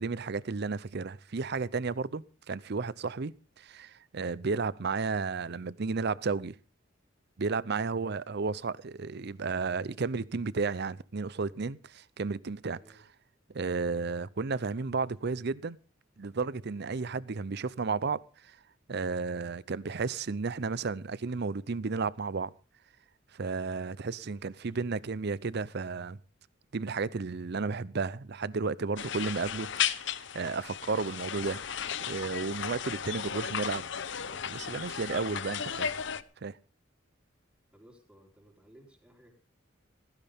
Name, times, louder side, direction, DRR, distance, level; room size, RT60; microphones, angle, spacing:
voice 1, 0.0-6.6 7.4-12.8 13.5-15.8 16.2-18.6 18.9-22.5 23.3-26.2 26.7-31.6 32.1-33.8 34.5-35.9 36.4-36.6, right 4 dB, 55° right, 0.6 m, -33 dB
voice 2, 24.2-24.7 37.7-39.3, right 1 dB, 5° right, 4.0 m, -59 dB
sound 1, 29.0-36.2, left 8 dB, 65° left, 0.8 m, -35 dB
16.0 x 16.0 x 3.5 m
head